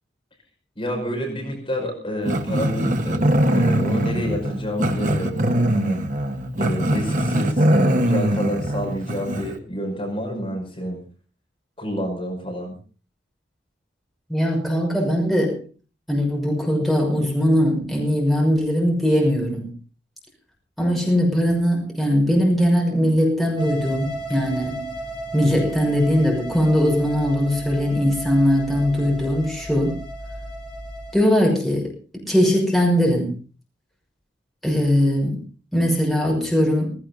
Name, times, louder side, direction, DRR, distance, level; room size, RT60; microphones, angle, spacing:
voice 1, 0.8-6.0 6.6-11.0 11.8-12.7, equal, 30° left, 1 dB, 5.7 m, -28 dB
Growling, 2.2-9.6, right 1 dB, 45° right, 1.7 m, -22 dB
voice 2, 14.3-15.6 16.1-19.7 20.8-24.9 25.3-30.0 31.1-33.3 34.6-35.4 35.7-36.9, equal, ahead, -1 dB, 6.0 m, -20 dB
sound 1, 23.6-31.1, right 1 dB, 25° right, 5.1 m, -34 dB
18.0 x 17.0 x 4.0 m, 0.37 s
head